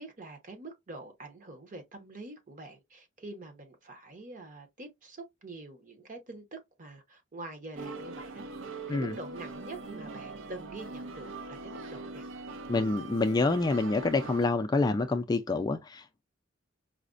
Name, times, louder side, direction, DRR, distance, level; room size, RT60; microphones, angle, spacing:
voice 1, 0.0-12.3, right 2 dB, 40° right, 0.9 m, -45 dB
sound 1, 7.8-14.5, right 3 dB, 75° right, 0.6 m, -42 dB
voice 2, 12.7-16.0, left 3 dB, 20° left, 0.3 m, -27 dB
4.9 x 2.1 x 2.4 m
head